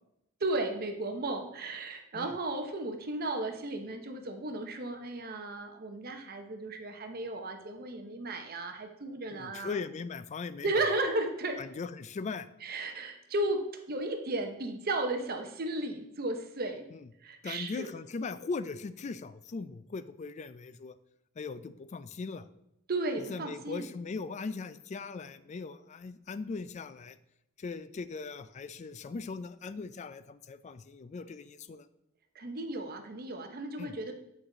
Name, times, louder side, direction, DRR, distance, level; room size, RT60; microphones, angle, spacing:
voice 1, 0.4-9.8 10.6-11.6 12.6-16.8 17.2-17.9 22.9-23.9 32.3-34.1, right 2 dB, 50° right, 5 dB, 0.8 m, -34 dB
voice 2, 9.3-10.7 11.6-12.5 17.4-20.9 21.4-22.4 23.3-27.2 27.6-31.9 33.8-33.9, left 4 dB, 35° left, 14 dB, 0.3 m, -39 dB
8.6 x 4.7 x 3.8 m, 0.82 s
head